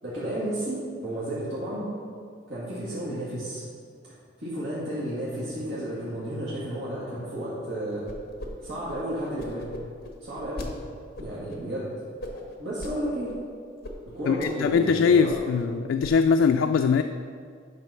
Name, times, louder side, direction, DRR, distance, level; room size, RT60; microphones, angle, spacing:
voice 1, 0.0-1.9 2.5-3.6 4.4-8.1 8.6-9.7 10.2-10.7 11.2-11.9 12.6-13.3 14.1-15.4, right 1 dB, 75° right, -9 dB, 2.0 m, -32 dB
sound 1, 8.1-8.5 8.7-10.7 11.2-11.6 12.2-12.9 13.3-13.4 13.8-13.9 14.2-14.9 15.1-15.7 16.0-16.4, left 1 dB, 55° left, 1.0 m, -39 dB
voice 2, 14.3-17.0, left 5 dB, 80° left, 7 dB, 0.3 m, -21 dB
7.8 x 5.2 x 5.6 m, 2.2 s
head